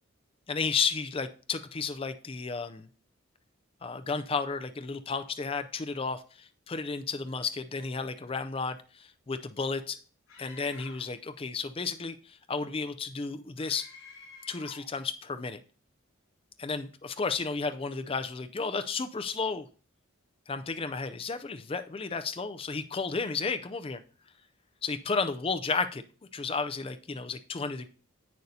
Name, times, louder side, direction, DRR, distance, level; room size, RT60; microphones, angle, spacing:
voice 1, 0.5-2.9 3.8-10.0 10.4-13.9 14.5-15.6 16.6-19.7 20.5-24.0 24.8-26.0 26.3-27.9, left 4 dB, 25° left, 10 dB, 0.4 m, -33 dB
Screaming, 10.3-11.2 13.6-14.9, left 3 dB, 75° left, 4.7 m, -50 dB
10.5 x 8.1 x 2.7 m, 0.39 s
head